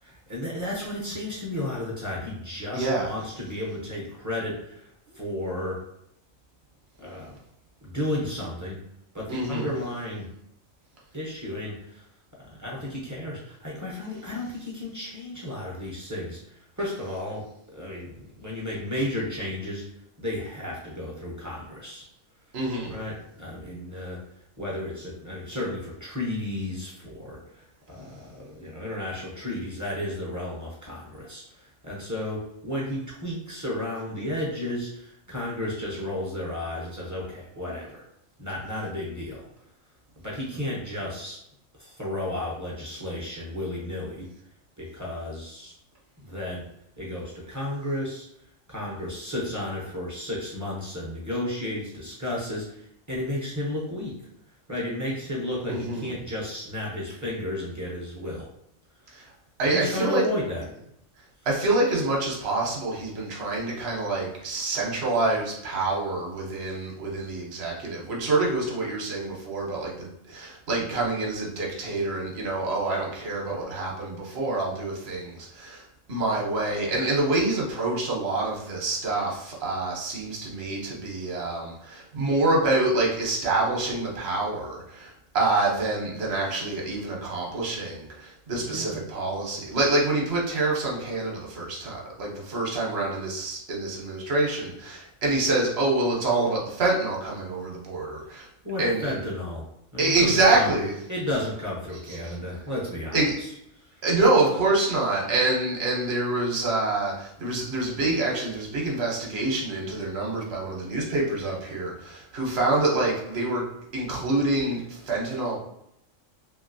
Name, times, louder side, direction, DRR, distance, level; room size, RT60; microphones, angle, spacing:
voice 1, 0.0-5.8 7.0-7.4 7.8-8.8 9.1-10.3 11.1-12.1 12.4-19.9 20.2-22.0 22.9-24.2 24.6-38.0 38.4-39.5 40.2-41.4 41.8-44.3 44.8-45.7 46.2-46.6 47.0-48.3 48.7-54.1 54.7-58.5 59.6-60.6 88.6-89.0 98.6-99.6 99.9-100.8 101.1-104.0, left 1 dB, 25° right, -5 dB, 0.4 m, -33 dB
voice 2, 2.7-3.1 9.3-9.7 22.5-22.9 55.7-56.1 59.1-59.2 59.6-60.3 61.5-75.8 76.1-98.5 98.8-99.2 100.0-100.9 102.2-102.3 103.1-103.3 104.0-113.7 113.9-115.6, right 2 dB, 55° right, -2 dB, 1.0 m, -26 dB
2.9 x 2.7 x 2.6 m, 0.77 s
omnidirectional pair, 1.4 m